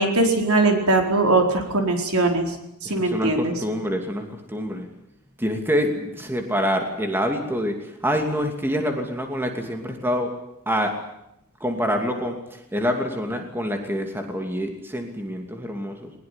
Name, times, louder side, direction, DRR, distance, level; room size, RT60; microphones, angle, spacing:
voice 1, 0.0-2.4 2.8-3.5, right 2 dB, 75° right, 3 dB, 4.5 m, -20 dB
voice 2, 2.8-4.9 5.4-10.3 10.7-11.0 11.6-16.1, equal, 10° right, 4 dB, 2.6 m, -26 dB
21.5 x 20.5 x 10.0 m, 0.83 s
head